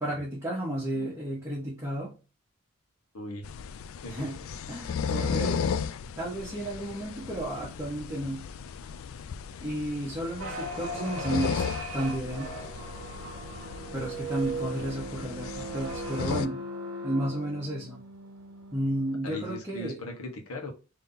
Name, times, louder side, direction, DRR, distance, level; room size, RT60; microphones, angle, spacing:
voice 1, 0.0-2.1 4.1-4.4 4.7-5.7 6.2-8.5 9.6-11.6 11.9-12.5 13.9-16.6 17.0-18.0 18.7-20.0, right 1 dB, 15° right, 1.2 m, -32 dB
voice 2, 3.1-3.5 4.0-4.3 19.2-20.7, equal, 90° left, 1.1 m, -39 dB
sound 1, 3.4-16.5, left 6 dB, 70° left, 0.3 m, -35 dB
sound 2, 10.4-19.1, right 1 dB, 75° right, 0.7 m, -38 dB
3.7 x 2.8 x 3.8 m
head